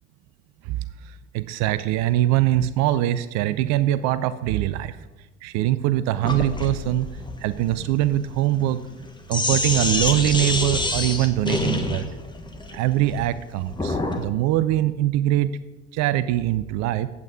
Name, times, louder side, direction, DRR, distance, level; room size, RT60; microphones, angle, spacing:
voice 1, 1.3-5.0 5.4-7.1 7.4-8.8 9.3-12.1 12.7-15.6 15.9-17.1, right 13 dB, 50° right, 14 dB, 0.5 m, -22 dB
Sink (filling or washing), 6.2-14.3, left 2 dB, 10° left, 1.4 m, -27 dB
9.1 x 8.2 x 5.1 m, 1.1 s
figure-of-eight pair, 60°, 36 cm